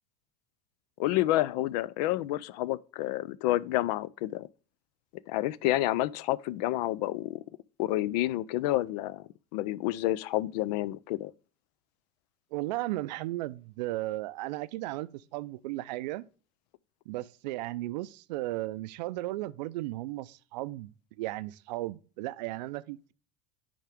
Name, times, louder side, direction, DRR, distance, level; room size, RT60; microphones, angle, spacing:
voice 1, 1.0-4.5 5.3-7.4 7.8-11.3, left 15 dB, 75° left, 0.4 m, -29 dB
voice 2, 12.5-16.2 17.1-23.1, right 17 dB, 80° right, 0.5 m, -35 dB
10.0 x 3.6 x 3.5 m
supercardioid pair, 105°, 21 cm